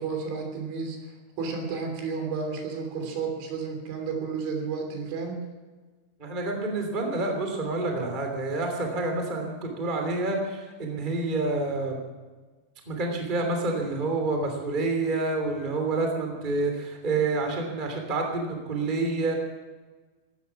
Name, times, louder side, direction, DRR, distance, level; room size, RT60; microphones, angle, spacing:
voice 1, 0.0-5.4, right 5 dB, 80° right, 2 dB, 5.5 m, -32 dB
voice 2, 6.2-12.0 12.9-19.3, right 3 dB, 15° right, 3 dB, 2.3 m, -28 dB
17.0 x 13.5 x 5.9 m, 1.3 s
omnidirectional pair, 5.4 m